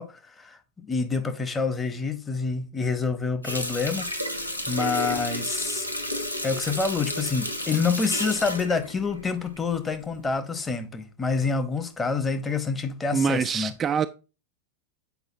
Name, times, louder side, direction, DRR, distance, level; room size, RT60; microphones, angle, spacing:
voice 1, 0.0-4.4 4.7-5.9 6.4-13.7, left 4 dB, 15° left, 1.0 m, -27 dB
Water tap faucet, 3.4-9.8 10.2-10.4, left 1 dB, 85° left, 1.1 m, -31 dB
voice 2, 13.1-14.1, right 6 dB, 25° right, 0.4 m, -24 dB
8.1 x 5.2 x 2.7 m
figure-of-eight pair, 90°, 0 cm